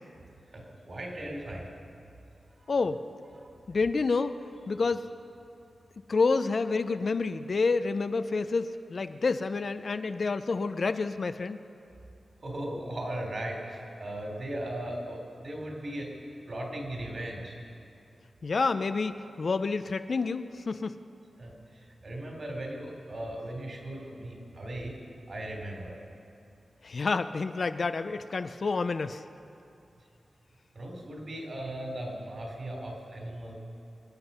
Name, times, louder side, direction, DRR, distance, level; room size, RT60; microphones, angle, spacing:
voice 1, 0.5-1.6 2.6-2.7 3.4-3.5 12.4-16.1 16.5-17.6 21.4-25.0 25.3-26.0 30.8-33.5, right 1 dB, 50° right, 0 dB, 3.5 m, -37 dB
voice 2, 2.7-3.0 3.7-4.4 4.7-5.0 6.1-11.6 18.4-21.0 26.8-29.2, left 4 dB, 55° left, 10 dB, 0.5 m, -28 dB
26.0 x 9.8 x 5.6 m, 2.7 s
wide cardioid pair, 110°, 0 cm